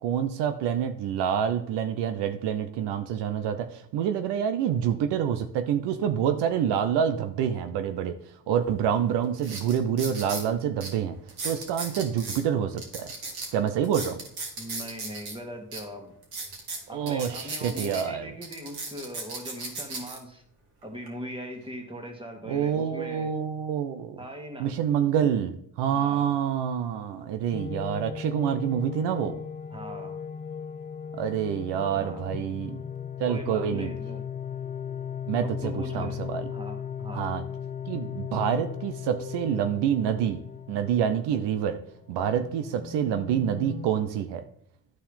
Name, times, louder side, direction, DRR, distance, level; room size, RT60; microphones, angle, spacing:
voice 1, 0.0-8.2 8.5-11.2 11.4-13.1 13.5-14.2 16.9-18.3 22.5-24.2 24.6-29.3 31.2-32.8 33.2-33.9 35.3-36.4 37.1-37.4 37.9-40.4 40.7-41.8 42.1-44.4, right 8 dB, 80° right, 9 dB, 0.7 m, -27 dB
sound 1, 8.7-8.8 9.3-10.5 10.8-10.9 11.3-12.4 12.8-15.3 15.7-15.8 16.2-18.0 18.4-20.2 20.8-21.1, right 3 dB, 65° right, 2.3 m, -36 dB
voice 2, 14.6-16.1 16.9-20.4 20.8-23.3 24.2-24.7 25.9-26.3 29.7-30.1 31.9-32.2 33.2-34.3 35.4-36.2 36.5-37.3, equal, 10° right, 2 dB, 2.1 m, -40 dB
sound 2, 27.5-43.9, left 8 dB, 20° left, 0.3 m, -37 dB
11.5 x 4.4 x 3.6 m, 0.67 s
supercardioid pair, 60°, 41 cm